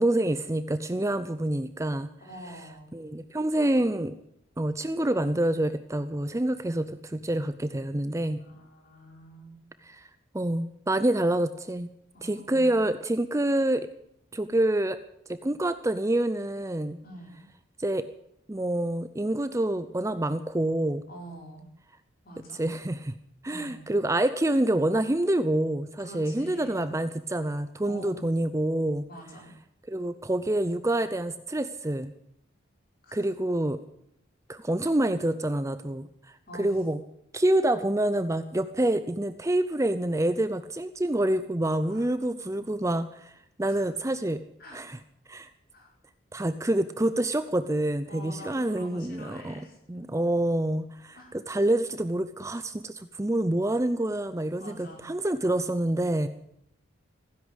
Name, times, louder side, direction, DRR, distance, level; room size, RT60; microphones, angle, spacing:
voice 1, 0.0-2.1 2.9-4.2 4.6-8.4 9.9-10.1 10.3-11.9 12.2-13.9 14.3-15.0 15.3-17.0 17.8-18.0 18.5-21.0 22.6-23.1 23.4-29.1 29.9-32.1 33.1-33.8 34.5-37.0 37.3-43.3 43.6-44.4 44.7-45.0 45.3-45.5 46.3-49.6 49.9-51.2 51.5-56.3, right 1 dB, 15° right, 12 dB, 0.5 m, -27 dB
voice 2, 2.2-2.9 8.4-9.6 12.1-12.8 17.0-17.4 21.1-21.6 22.2-22.6 23.5-23.8 26.0-26.9 27.8-28.4 29.1-29.5 33.0-33.3 36.5-36.8 41.8-42.6 43.6-43.9 44.6-44.8 45.7-45.9 48.1-50.1 51.1-51.4 54.6-55.1, right 1 dB, 45° left, 0 dB, 5.0 m, -46 dB
16.0 x 10.5 x 8.1 m, 0.76 s
head